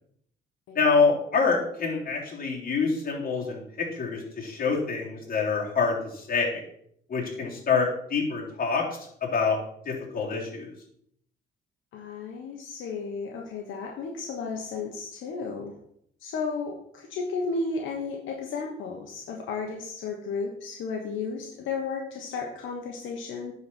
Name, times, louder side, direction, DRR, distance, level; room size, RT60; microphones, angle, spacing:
voice 1, 0.7-6.6 7.1-9.6 9.8-10.7, left 4 dB, 45° left, -3 dB, 3.3 m, -26 dB
voice 2, 11.9-15.7 16.2-23.5, left 4 dB, 80° left, 0 dB, 1.2 m, -33 dB
9.6 x 4.3 x 6.1 m, 0.70 s
cardioid pair, 90°, 20 cm